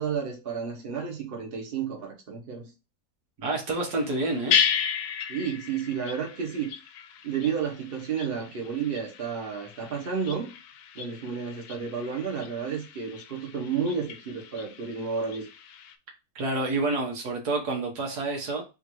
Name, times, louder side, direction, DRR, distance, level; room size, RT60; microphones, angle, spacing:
voice 1, 0.0-2.7 5.3-6.7 7.2-10.5 10.9-15.5, right 6 dB, 40° right, 1 dB, 1.2 m, -31 dB
voice 2, 3.4-4.6 16.4-18.6, right 2 dB, 90° right, 0 dB, 1.7 m, -28 dB
sound 1, 3.7-15.9, left 7 dB, 75° left, 1.1 m, -34 dB
3.8 x 2.7 x 4.5 m, 0.29 s
omnidirectional pair, 1.6 m